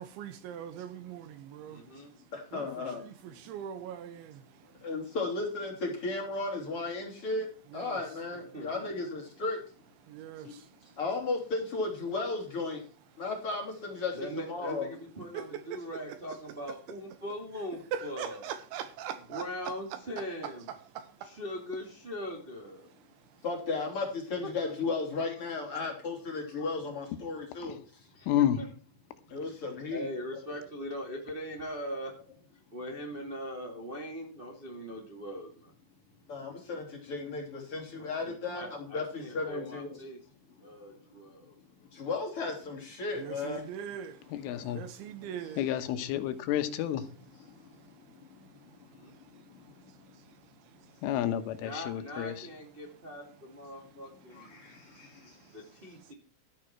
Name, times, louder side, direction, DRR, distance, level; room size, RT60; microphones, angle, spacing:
voice 1, 0.0-4.9 7.7-8.0 10.0-11.0 15.3-16.4 17.1-17.2 17.9-21.4 22.9-23.4 43.2-45.7 47.5-51.1 53.7-56.1, right 9 dB, 75° right, 3.0 m, -44 dB
voice 2, 1.6-2.1 8.5-8.8 14.1-18.4 19.3-20.7 21.2-22.9 24.4-25.0 28.1-28.7 29.4-29.6 29.9-32.1 32.7-35.7 38.0-40.2 40.6-41.5 48.9-49.1 51.6-54.6 55.5-56.1, equal, 30° right, 0.9 m, -41 dB
voice 3, 2.3-3.0 4.8-7.5 7.7-9.6 11.0-12.8 13.2-14.9 23.4-27.8 29.3-30.1 36.3-40.0 41.9-43.7 44.6-44.7 54.3-55.3, left 3 dB, 35° left, 3.2 m, -35 dB
voice 4, 28.3-28.6 44.3-44.8 45.6-47.0 51.0-52.5, left 11 dB, 80° left, 3.6 m, -30 dB
13.5 x 10.0 x 4.5 m
omnidirectional pair, 5.8 m